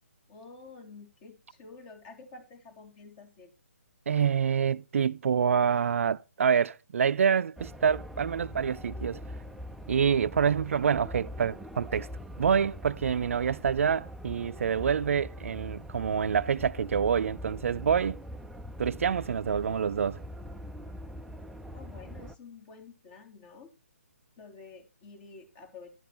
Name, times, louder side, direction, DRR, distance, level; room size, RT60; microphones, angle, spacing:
voice 1, 0.3-3.5 21.7-23.7 24.4-25.9, left 4 dB, 30° left, 3.5 m, -49 dB
voice 2, 4.1-9.2 9.9-12.1 12.4-18.2 18.8-20.2, right 7 dB, 60° right, 0.4 m, -27 dB
sound 1, 7.6-22.3, equal, ahead, 0.4 m, -42 dB
11.5 x 7.8 x 4.3 m
figure-of-eight pair, 145°, 8 cm